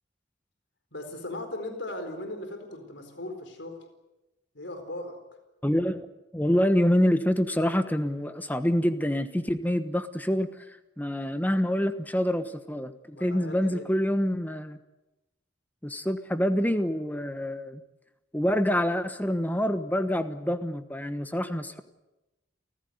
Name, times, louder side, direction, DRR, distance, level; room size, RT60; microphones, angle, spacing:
voice 1, 0.9-3.8 4.5-5.2 13.1-13.9, left 1 dB, 70° left, 7 dB, 4.4 m, -38 dB
voice 2, 5.6-6.1 6.3-10.5 11.0-14.8 15.8-17.8 18.3-21.8, equal, 10° left, 10 dB, 1.2 m, -26 dB
29.5 x 15.5 x 9.4 m, 1.0 s
head